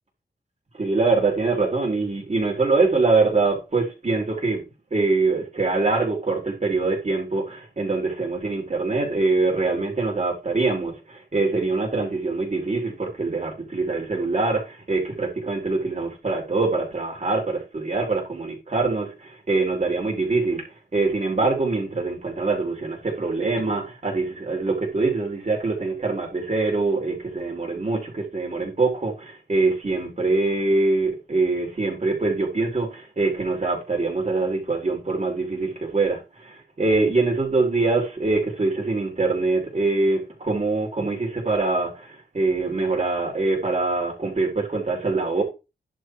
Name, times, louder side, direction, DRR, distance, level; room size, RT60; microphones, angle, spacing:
voice 1, 0.7-4.6 4.9-20.7 20.9-45.4, right 3 dB, 40° right, 4.1 m, -24 dB
10.5 x 4.2 x 4.7 m
wide cardioid pair, 100°, 18 cm